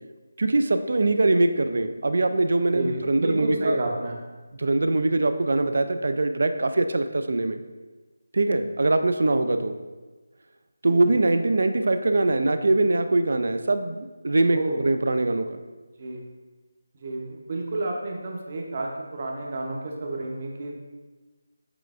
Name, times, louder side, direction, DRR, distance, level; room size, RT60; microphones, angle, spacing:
voice 1, 0.4-3.8 4.5-7.6 8.3-9.8 10.8-15.6, right 2 dB, 60° right, 9 dB, 0.3 m, -22 dB
voice 2, 2.7-4.2 10.8-11.0 14.5-14.8 16.0-16.2 16.9-20.8, right 2 dB, 40° right, 1 dB, 0.7 m, -30 dB
6.8 x 3.2 x 2.4 m, 1.3 s
figure-of-eight pair, 160°, 0 cm